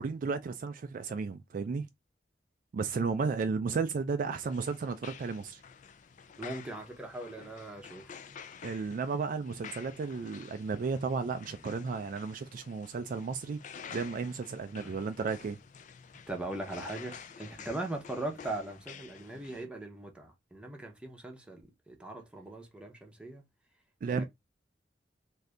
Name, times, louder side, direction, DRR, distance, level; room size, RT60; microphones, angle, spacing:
voice 1, 0.0-1.9 2.7-5.6 8.6-13.6 13.9-15.6 24.0-24.2, right 5 dB, 50° right, 0.3 m, -33 dB
sound 1, 4.3-19.7, left 7 dB, 45° left, 0.4 m, -50 dB
voice 2, 6.4-8.2 14.8-14.9 16.3-23.4 24.1-24.2, right 2 dB, 5° right, 0.7 m, -40 dB
2.7 x 2.5 x 3.2 m
head